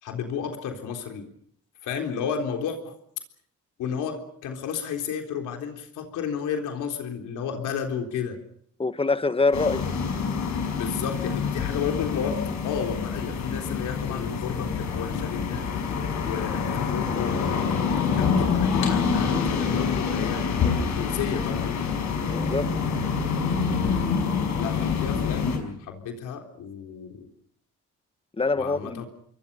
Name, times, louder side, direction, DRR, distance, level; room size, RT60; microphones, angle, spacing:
voice 1, 0.0-1.3 1.8-3.0 3.8-8.4 10.7-15.7 16.2-20.5 20.9-21.8 24.5-27.3 28.6-29.1, left 7 dB, 85° left, 3.8 m, -32 dB
voice 2, 8.8-9.9 22.3-22.7 28.4-29.0, left 3 dB, 20° left, 1.2 m, -24 dB
sound 1, 9.5-25.6, left 6 dB, 70° left, 5.8 m, -26 dB
27.5 x 22.5 x 5.5 m
cardioid pair, 90°, 30 cm